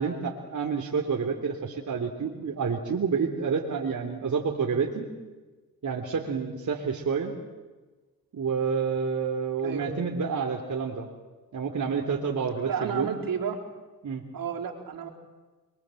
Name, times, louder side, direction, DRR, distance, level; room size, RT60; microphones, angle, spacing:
voice 1, 0.0-5.1 5.8-7.3 8.3-11.1 11.5-13.2 14.0-14.2, right 5 dB, 55° right, 1 dB, 3.4 m, -29 dB
voice 2, 12.6-13.6 14.3-15.1, right 7 dB, 70° right, 2 dB, 4.4 m, -32 dB
28.0 x 23.0 x 7.9 m, 1.3 s
supercardioid pair, 55°, 35 cm